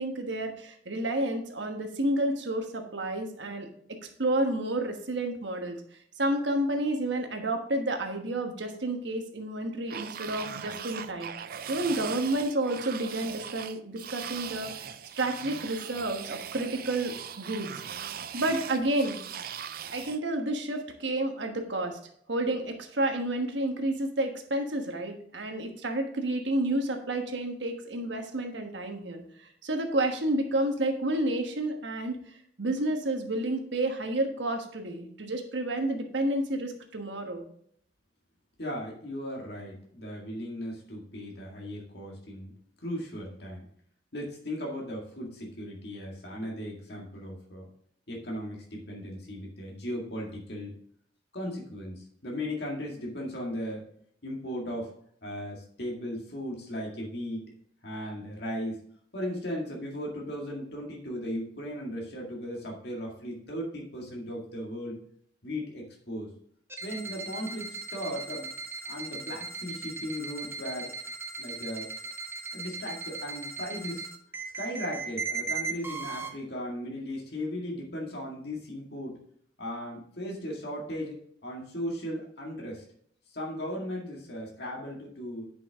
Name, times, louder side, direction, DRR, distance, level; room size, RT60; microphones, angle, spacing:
voice 1, 0.0-3.7 4.2-5.8 6.2-11.3 11.7-17.7 18.3-19.2 19.9-22.0 22.3-29.2 29.6-32.2 32.6-37.4, right 1 dB, 70° right, 4 dB, 1.3 m, -30 dB
sound 1, 9.9-20.2, right 8 dB, 50° right, 0.5 m, -40 dB
voice 2, 38.6-42.5 42.8-43.7 44.1-47.7 48.1-50.8 51.3-53.9 54.2-55.0 55.2-57.5 57.8-58.8 59.1-65.0 65.4-66.3 66.8-68.5 68.8-71.0 71.4-71.9 72.5-74.1 74.6-79.2 79.6-82.8 83.3-85.5, equal, 60° left, -2 dB, 2.0 m, -37 dB
sound 2, 66.7-76.3, right 4 dB, 15° right, 0.8 m, -37 dB
9.8 x 5.6 x 3.6 m, 0.65 s
head